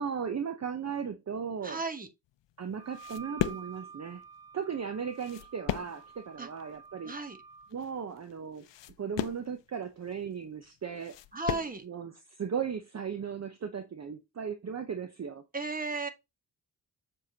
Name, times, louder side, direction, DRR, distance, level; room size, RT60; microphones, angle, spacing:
voice 1, 0.0-1.8 2.6-4.2 4.5-7.1 7.7-8.7 9.0-11.2 11.8-15.4, right 7 dB, 40° right, 0.7 m, -36 dB
voice 2, 1.6-2.1 6.4-6.5 7.0-7.4 11.3-11.8 15.5-16.1, right 3 dB, 20° right, 1.1 m, -34 dB
sound 1, 2.3-11.9, left 12 dB, 90° left, 0.6 m, -38 dB
Wind instrument woodwind instrument, 2.7-7.7, right 6 dB, 60° right, 1.0 m, -49 dB
7.1 x 4.8 x 2.8 m
wide cardioid pair, 110°, 42 cm